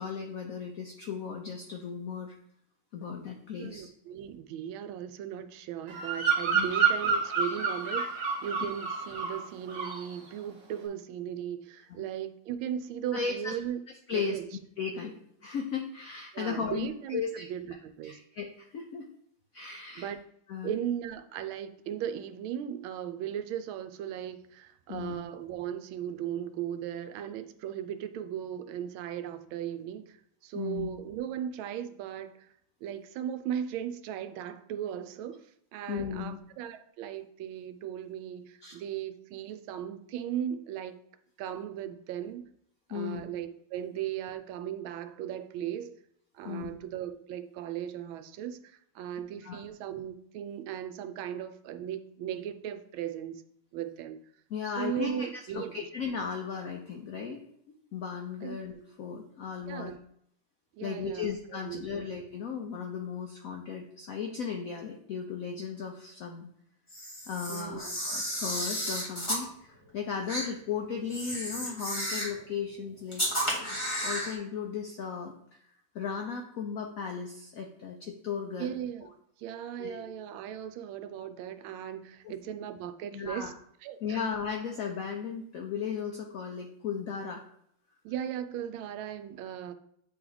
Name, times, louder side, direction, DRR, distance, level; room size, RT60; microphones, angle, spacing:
voice 1, 0.0-2.3 2.9-3.9 6.5-6.7 12.0-12.1 13.1-13.6 14.1-14.4 14.8-17.4 18.0-19.1 19.5-20.1 20.5-20.7 24.9-25.2 30.5-30.9 35.9-36.4 38.6-38.8 42.9-43.2 46.4-46.7 49.4-49.6 54.5-57.4 57.9-59.9 60.8-66.5 67.3-75.3 75.9-78.7 79.8-80.1 82.2-82.3 83.1-83.5 84.0-87.4, left 6 dB, 80° left, 2 dB, 0.7 m, -36 dB
voice 2, 3.6-13.8 14.1-14.5 16.3-18.2 20.0-20.2 20.6-30.2 30.4-32.5 32.8-41.0 41.4-42.4 42.9-46.0 46.3-53.4 53.7-54.2 54.6-55.9 58.4-58.6 59.7-60.0 60.8-62.0 67.5-68.0 78.6-79.1 79.4-83.5 83.8-84.2 88.0-89.7, right 10 dB, 85° right, 9 dB, 1.4 m, -37 dB
Bird vocalization bird call bird song, 5.9-9.4 9.7-10.1, right 5 dB, 50° right, 1.0 m, -29 dB
Camera, 66.9-69.4 70.3-70.5 71.1-72.4 73.1-74.3, equal, 15° left, 1.9 m, -33 dB
8.5 x 3.1 x 3.9 m, 0.70 s
omnidirectional pair, 2.2 m